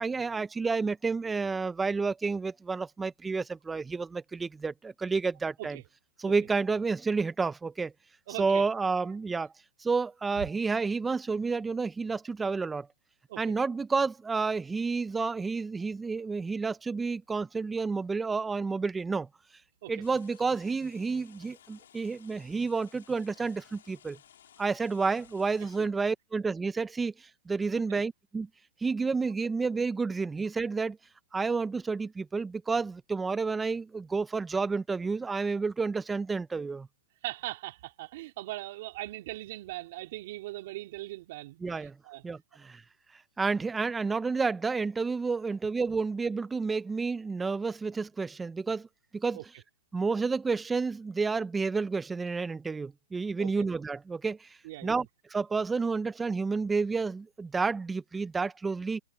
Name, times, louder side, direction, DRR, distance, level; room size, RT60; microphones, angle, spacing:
voice 1, 0.0-5.8 6.2-7.9 8.4-9.5 9.8-12.9 13.4-19.3 19.9-24.2 24.6-28.5 28.8-31.0 31.3-36.9 41.6-42.0 42.2-42.8 43.4-48.9 49.1-49.4 49.9-59.0, right 4 dB, 10° right, 0.8 m, -30 dB
voice 2, 8.3-8.6 13.3-13.5 19.8-19.9 25.8-25.9 27.9-28.0 37.2-42.2 49.3-49.4 53.4-53.7 54.6-54.9, right 18 dB, 50° right, 2.8 m, -40 dB
sound 1, 20.0-25.9, left 10 dB, 70° left, 4.8 m, -58 dB
hypercardioid pair, 135°, 0 cm